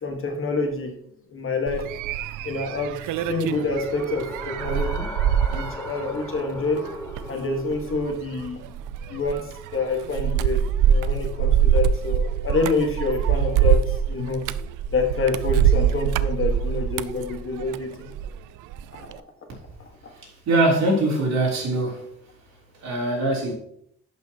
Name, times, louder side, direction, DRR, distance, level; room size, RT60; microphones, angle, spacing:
voice 1, 0.0-0.9 1.3-1.8 2.4-5.1 5.5-8.7 9.0-9.5 9.7-14.4 14.9-18.1 18.9-19.1 19.8-20.1, left 3 dB, 45° left, 3 dB, 1.8 m, -27 dB
sound 1, 1.7-18.4 18.7-19.2, right 9 dB, 85° right, 0.4 m, -24 dB
sound 2, 3.0-8.1, left 1 dB, 10° left, 1.1 m, -38 dB
voice 2, 20.2-22.1 22.8-23.5, right 2 dB, 65° right, -2 dB, 3.5 m, -22 dB
11.0 x 5.5 x 3.0 m, 0.69 s
cardioid pair, 90°, 30 cm